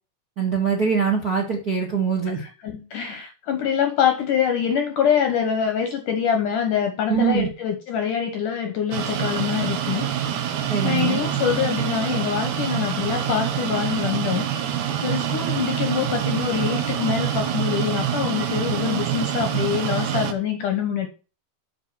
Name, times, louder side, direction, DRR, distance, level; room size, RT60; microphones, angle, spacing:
voice 1, 0.4-2.4 7.1-7.5 10.7-11.3, right 7 dB, 40° right, 2 dB, 1.4 m, -23 dB
voice 2, 2.3-10.1 10.8-14.5 15.0-21.1, left 8 dB, 65° left, 5 dB, 2.2 m, -25 dB
sound 1, 8.9-20.3, right 9 dB, 70° right, 1.8 m, -26 dB
8.1 x 5.7 x 7.5 m, 0.34 s
omnidirectional pair, 4.9 m